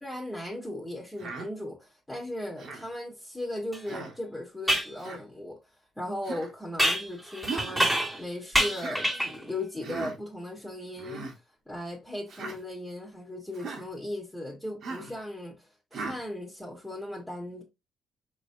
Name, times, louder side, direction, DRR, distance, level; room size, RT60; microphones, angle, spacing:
voice 1, 0.0-5.6 6.0-11.4 11.7-17.6, left 1 dB, 5° left, 1.4 m, -37 dB
Human voice, 1.2-1.5 2.6-2.9 3.8-4.2 5.0-5.2 6.2-6.5 7.4-7.8 8.7-9.0 9.8-10.1 11.0-11.3 12.3-12.6 13.5-13.8 14.8-15.1 15.9-16.2, right 4 dB, 70° right, 1.4 m, -38 dB
sound 1, 3.7-3.8 4.7-4.9 6.8-8.2 8.5-9.4, equal, 10° right, 1.7 m, -26 dB
4.8 x 3.1 x 2.7 m
cardioid pair, 85°, 0 cm